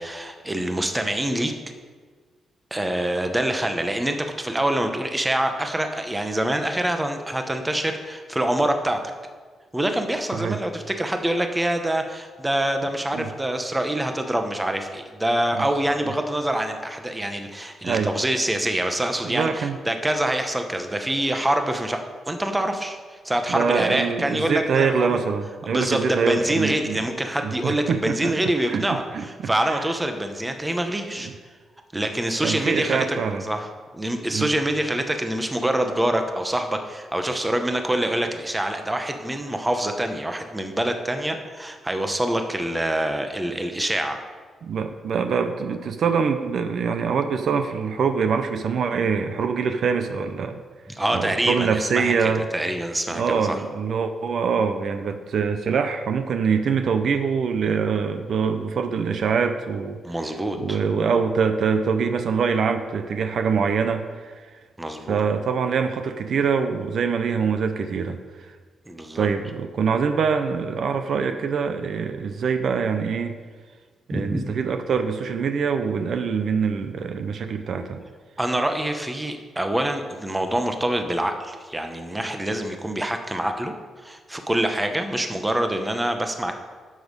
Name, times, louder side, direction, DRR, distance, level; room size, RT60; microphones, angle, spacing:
voice 1, 0.0-1.5 2.7-9.0 9.7-22.0 22.2-25.2 25.6-31.3 31.9-33.2 33.4-33.7 33.9-44.2 50.9-53.6 60.0-60.8 64.8-65.2 68.9-69.3 74.1-74.4 78.4-83.7 84.0-86.6, right 1 dB, 10° right, 6 dB, 0.8 m, -25 dB
voice 2, 19.2-19.8 23.5-27.1 27.4-28.3 28.7-28.9 29.1-29.3 29.7-29.9 31.2-31.3 32.4-33.4 34.3-34.5 44.6-50.6 51.1-52.5 53.1-60.0 60.6-64.5 65.1-68.5 69.1-73.4 74.1-78.0, right 6 dB, 55° right, 8 dB, 0.6 m, -24 dB
12.0 x 6.3 x 5.2 m, 1.5 s
wide cardioid pair, 160°, 0 cm